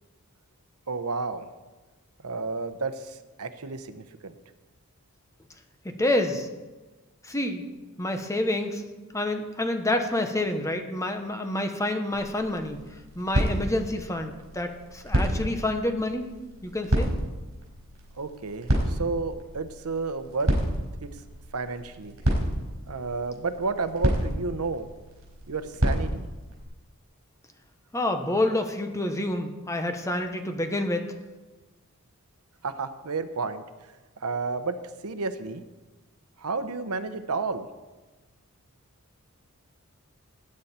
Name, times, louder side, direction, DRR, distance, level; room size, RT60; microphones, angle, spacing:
voice 1, 0.9-1.5 2.2-4.3 18.2-20.6 21.0-21.1 21.5-22.2 22.9-24.9 25.5-26.3 32.6-33.6 34.2-34.8 35.0-35.6 36.4-37.7, right 4 dB, 85° right, 10 dB, 0.9 m, -31 dB
voice 2, 6.0-6.5 7.2-7.6 8.0-8.8 9.1-12.8 13.2-16.3 16.6-17.1 27.9-31.1, left 1 dB, 15° left, 6 dB, 1.0 m, -28 dB
sound 1, 12.1-26.6, equal, 65° right, 4.5 m, -30 dB
19.5 x 9.4 x 4.3 m, 1.2 s
head